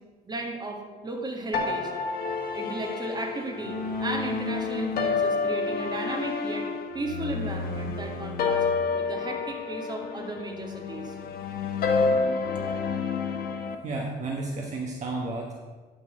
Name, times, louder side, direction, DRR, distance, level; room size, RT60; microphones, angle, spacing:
voice 1, 0.2-1.9 2.5-6.7 6.9-8.7 8.9-11.2, right 2 dB, 25° right, 1 dB, 1.7 m, -35 dB
sound 1, 1.5-13.8, left 4 dB, 60° left, 1.1 m, -29 dB
voice 2, 13.8-15.5, right 2 dB, 45° right, 0 dB, 1.2 m, -32 dB
11.5 x 4.1 x 6.4 m, 1.3 s
cardioid pair, 110°, 17 cm